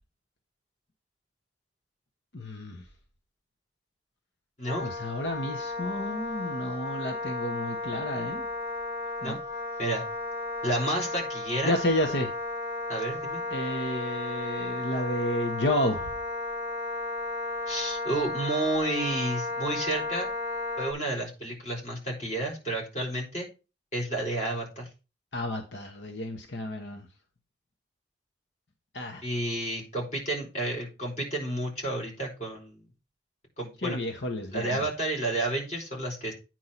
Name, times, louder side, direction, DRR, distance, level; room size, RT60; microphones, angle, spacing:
voice 1, 2.3-2.9 4.8-8.5 9.2-9.4 11.6-12.3 13.5-16.2 25.3-27.1 28.9-29.2 33.8-34.9, left 1 dB, 85° left, 4 dB, 1.2 m, -31 dB
voice 2, 4.6-4.9 9.2-9.4 9.8-10.0 10.6-11.7 12.9-13.4 17.7-20.3 20.8-23.5 23.9-24.9 29.2-32.8 33.6-34.0 34.5-36.3, right 1 dB, 40° left, -1 dB, 4.6 m, -31 dB
Wind instrument woodwind instrument, 4.7-20.9, left 2 dB, 60° left, 3.2 m, -34 dB
9.4 x 4.6 x 5.8 m, 0.31 s
head